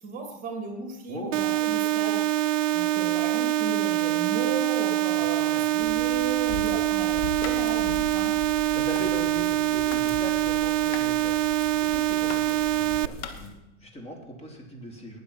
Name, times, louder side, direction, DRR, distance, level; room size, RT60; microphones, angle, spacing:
voice 1, 0.0-2.3 2.7-8.4, right 4 dB, 20° right, 4 dB, 2.9 m, -35 dB
voice 2, 1.1-1.4 5.4-5.7 8.7-15.2, right 1 dB, 15° left, 2 dB, 3.3 m, -39 dB
sound 1, 1.3-13.1, right 13 dB, 85° right, 0.5 m, -25 dB
sound 2, 5.8-13.5, left 3 dB, 35° left, 3.1 m, -41 dB
sound 3, 7.4-7.6 7.9-8.0 8.3-9.1 9.6-10.1 10.4-13.3, left 8 dB, 60° left, 1.9 m, -40 dB
19.5 x 7.2 x 5.9 m, 0.97 s
hypercardioid pair, 110°, 37 cm